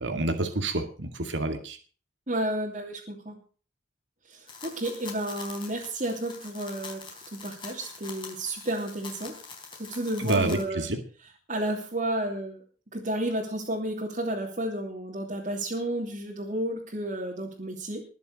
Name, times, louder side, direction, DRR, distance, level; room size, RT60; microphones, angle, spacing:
voice 1, 0.0-1.8 10.2-11.0, right 2 dB, 85° right, 6 dB, 2.2 m, -28 dB
voice 2, 2.3-3.4 4.3-7.0 7.3-9.3 9.7-10.9 11.5-12.6 12.9-18.0, right 1 dB, 40° right, -3 dB, 2.9 m, -31 dB
sound 1, 4.5-10.6, left 5 dB, 25° left, 4.1 m, -44 dB
21.0 x 7.2 x 6.5 m, 0.40 s
head